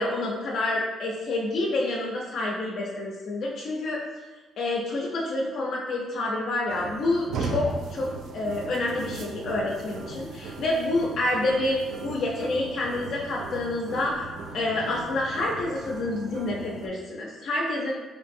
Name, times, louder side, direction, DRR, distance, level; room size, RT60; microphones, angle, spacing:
voice 1, 0.0-4.0 4.6-8.1 8.3-14.3 14.5-17.9, left 2 dB, 65° left, -3 dB, 0.5 m, -28 dB
sound 1, 6.7-16.9, right 3 dB, 75° right, 0.3 m, -37 dB
3.7 x 2.6 x 2.6 m, 1.2 s
cardioid pair, 90°, 0 cm